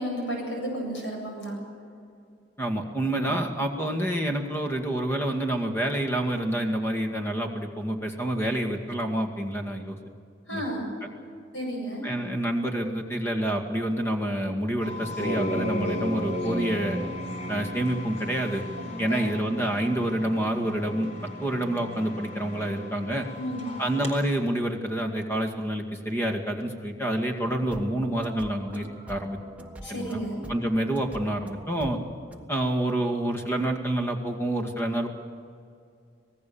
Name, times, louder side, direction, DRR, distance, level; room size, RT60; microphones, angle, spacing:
voice 1, 0.0-1.5 10.5-10.9 11.5-12.0 18.8-19.3 23.4-23.7 29.8-30.4, right 1 dB, 85° left, 0 dB, 7.9 m, -33 dB
voice 2, 2.6-10.0 10.5-10.6 12.0-17.0 17.5-18.6 19.0-21.1 21.4-23.3 23.8-29.4 29.9-30.2 30.5-32.0 32.5-35.1, right 1 dB, 15° left, 3 dB, 2.1 m, -28 dB
sound 1, 14.8-24.1, equal, 40° left, 4.2 m, -34 dB
sound 2, 27.4-32.5, right 1 dB, 10° right, 1.4 m, -44 dB
26.0 x 18.5 x 7.1 m, 2.4 s
head